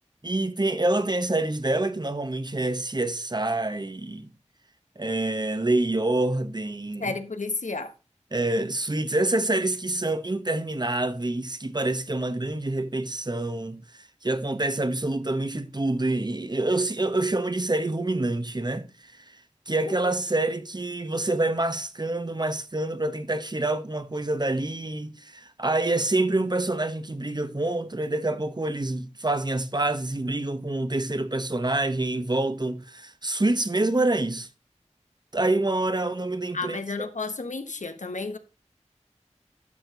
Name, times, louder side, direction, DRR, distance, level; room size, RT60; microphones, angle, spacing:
voice 1, 0.2-4.3 5.0-7.1 8.3-13.8 14.2-19.2 19.7-34.5 35.3-36.8, right 2 dB, 35° right, 1.1 m, -27 dB
voice 2, 7.0-7.9 19.9-20.0 36.5-38.4, left 3 dB, 85° left, 1.3 m, -32 dB
11.5 x 6.5 x 3.9 m
wide cardioid pair, 40°, 12 cm